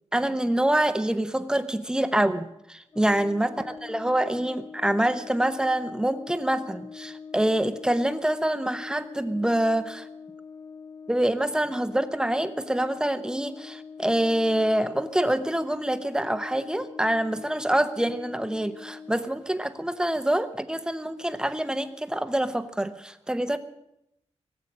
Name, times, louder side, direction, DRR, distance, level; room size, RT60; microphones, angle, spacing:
voice 1, 0.1-10.1 11.1-23.6, right 1 dB, 5° right, 10 dB, 0.9 m, -26 dB
Brass instrument, 2.9-19.3, left 5 dB, 35° left, 1.1 m, -44 dB
17.5 x 8.1 x 8.7 m, 0.83 s
wide cardioid pair, 115°, 11 cm